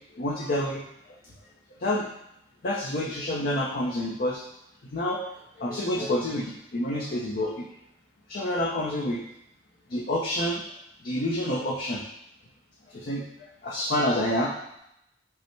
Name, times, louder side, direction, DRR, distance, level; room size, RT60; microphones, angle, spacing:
voice 1, 0.2-0.8 1.8-2.1 2.6-4.4 4.9-5.2 5.6-7.6 8.3-9.2 9.9-10.6 11.0-12.0 12.9-13.2 13.6-14.5, left 1 dB, 55° left, -4 dB, 0.6 m, -28 dB
5.5 x 2.1 x 4.5 m, 0.80 s
head